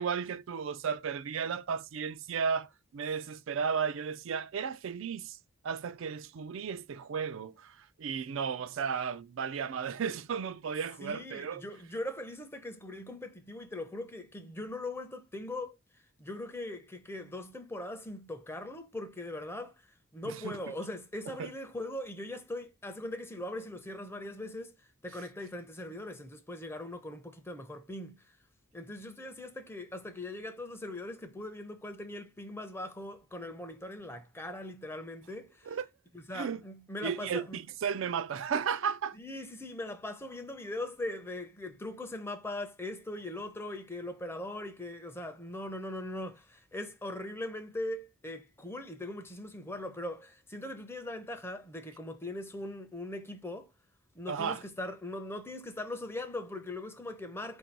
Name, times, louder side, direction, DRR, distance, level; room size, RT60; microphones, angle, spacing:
voice 1, 0.0-5.4 5.6-11.6 20.3-20.5 21.4-21.5 35.7-35.9 36.3-36.6 37.0-39.2 54.3-54.6, right 6 dB, 70° right, 0.4 m, -34 dB
voice 2, 11.0-15.8 16.2-19.8 20.1-24.7 25.0-28.2 28.7-35.7 36.1-37.6 39.1-53.7 54.1-57.6, left 1 dB, 10° left, 0.5 m, -40 dB
4.5 x 2.7 x 4.4 m
head